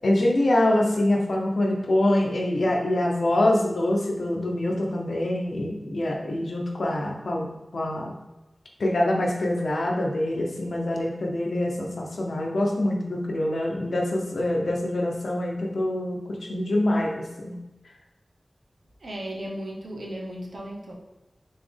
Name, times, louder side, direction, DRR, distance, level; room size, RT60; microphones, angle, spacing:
voice 1, 0.0-8.2 8.8-17.6, left 1 dB, 85° left, 0 dB, 0.7 m, -25 dB
voice 2, 19.0-20.9, equal, 75° right, -1 dB, 0.9 m, -35 dB
4.2 x 3.8 x 3.3 m, 1.0 s
wide cardioid pair, 80°, 0 cm